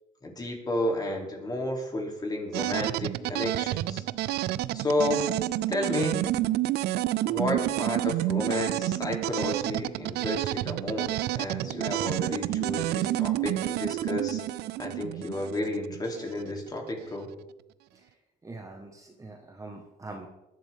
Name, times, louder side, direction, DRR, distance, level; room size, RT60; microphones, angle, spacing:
voice 1, 0.2-4.0 4.7-5.2 5.7-6.2 7.3-14.4 14.8-17.3, left 1 dB, 25° left, 1 dB, 3.1 m, -31 dB
sound 1, 2.5-16.4, right 15 dB, 75° right, 0.5 m, -29 dB
voice 2, 18.4-20.3, right 2 dB, 20° right, 2 dB, 1.4 m, -43 dB
20.0 x 11.0 x 3.6 m, 0.98 s
cardioid pair, 110°, 17 cm